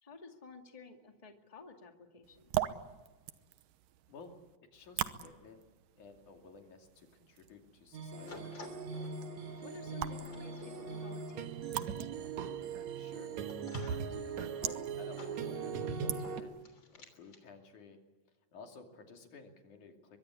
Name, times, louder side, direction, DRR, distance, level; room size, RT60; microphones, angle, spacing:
voice 1, 0.0-2.7 9.6-11.5, left 4 dB, 15° left, 4 dB, 1.4 m, -53 dB
sound 1, 2.2-16.6, right 14 dB, 75° right, 2.5 m, -44 dB
voice 2, 4.7-5.6 6.0-8.5 12.9-13.4 14.1-16.5 16.9-18.0 18.5-20.2, left 4 dB, 60° left, 3 dB, 4.0 m, -54 dB
sound 2, 7.9-16.4, right 5 dB, 60° right, 2.5 m, -40 dB
sound 3, 8.3-17.4, left 4 dB, 35° left, 3.5 m, -55 dB
23.5 x 22.5 x 8.4 m, 1.2 s
omnidirectional pair, 4.1 m